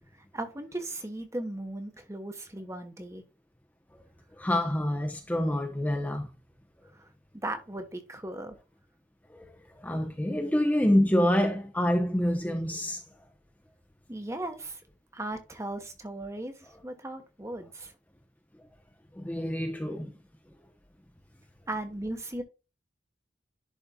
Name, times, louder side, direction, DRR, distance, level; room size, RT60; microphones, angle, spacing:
voice 1, 0.3-3.2 6.9-7.1 7.4-8.6 14.1-14.8 15.1-17.9 21.7-22.4, right 1 dB, 15° right, 1.2 m, -37 dB
voice 2, 4.3-6.3 9.3-13.0 19.1-20.1, left 1 dB, 10° left, 0.8 m, -27 dB
11.0 x 4.2 x 2.3 m
head